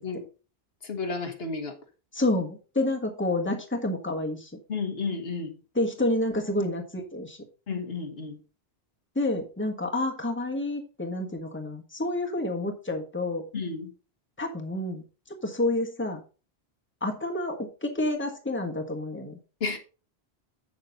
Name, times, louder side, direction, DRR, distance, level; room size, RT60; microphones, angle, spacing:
voice 1, 0.8-1.8 4.7-5.6 7.7-8.4 13.5-13.9 19.6-19.8, left 4 dB, 70° left, 1.8 m, -32 dB
voice 2, 2.1-4.5 5.7-7.4 9.1-13.4 14.4-15.0 15.4-16.2 17.0-19.4, left 2 dB, 10° left, 1.5 m, -29 dB
8.6 x 6.9 x 4.0 m
omnidirectional pair, 1.1 m